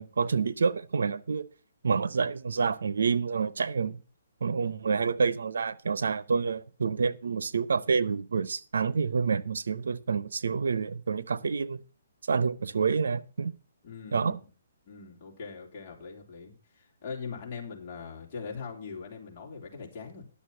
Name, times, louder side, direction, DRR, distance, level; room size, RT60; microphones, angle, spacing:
voice 1, 0.0-1.4 1.8-4.0 4.4-11.8 12.3-13.5 14.1-14.4, right 5 dB, 80° right, 0.8 m, -28 dB
voice 2, 13.8-14.3 14.9-20.2, left 5 dB, 35° left, 3.5 m, -41 dB
11.0 x 6.9 x 5.6 m
hypercardioid pair, 160°, 0 cm